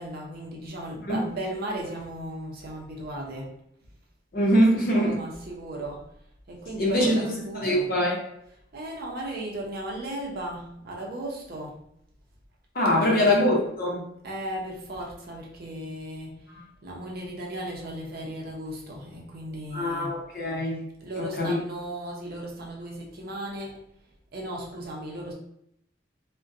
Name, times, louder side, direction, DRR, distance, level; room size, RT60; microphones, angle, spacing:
voice 1, 0.0-3.5 4.9-6.1 6.5-7.9 8.7-11.8 13.0-13.4 14.2-16.4 16.8-20.1 21.0-23.8 24.3-25.3, right 1 dB, 50° right, -1 dB, 0.6 m, -36 dB
voice 2, 4.3-5.1 6.8-8.2 12.7-14.0 19.7-20.8 21.2-21.5, equal, 50° left, -3 dB, 0.7 m, -23 dB
2.5 x 2.1 x 2.5 m, 0.74 s
head